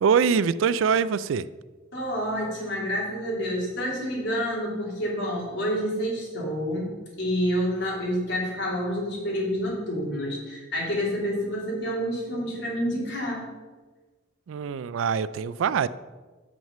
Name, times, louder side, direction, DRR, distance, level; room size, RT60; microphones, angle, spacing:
voice 1, 0.0-1.5 14.5-15.9, right 6 dB, 75° right, 16 dB, 0.3 m, -23 dB
voice 2, 1.9-6.9 7.2-13.5, equal, 60° left, -4 dB, 3.0 m, -28 dB
7.2 x 6.1 x 6.6 m, 1.3 s
head